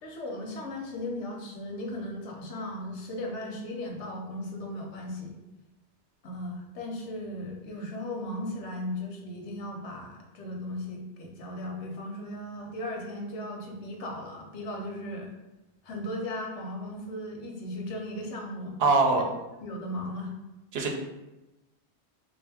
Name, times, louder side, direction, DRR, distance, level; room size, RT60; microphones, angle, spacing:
voice 1, 0.0-5.4 6.2-15.3 15.8-18.8 19.1-19.2 19.6-20.3 20.8-20.9, left 1 dB, 90° left, 1 dB, 1.1 m, -37 dB
voice 2, 18.8-19.2 20.7-20.9, right 3 dB, 65° right, 2 dB, 0.8 m, -22 dB
3.5 x 2.6 x 3.4 m, 1.0 s
omnidirectional pair, 1.2 m